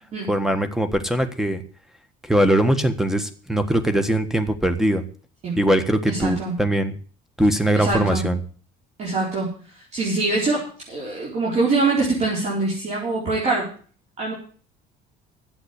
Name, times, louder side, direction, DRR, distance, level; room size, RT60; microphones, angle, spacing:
voice 1, 0.3-1.6 2.2-5.0 5.6-6.9 7.4-8.4, right 1 dB, 5° right, 10 dB, 1.5 m, -21 dB
voice 2, 6.1-6.5 7.7-8.3 9.0-9.5 9.9-13.7 14.2-14.3, right 3 dB, 40° right, -4 dB, 4.6 m, -24 dB
11.5 x 7.9 x 8.4 m, 0.43 s
cardioid pair, 125°, 17 cm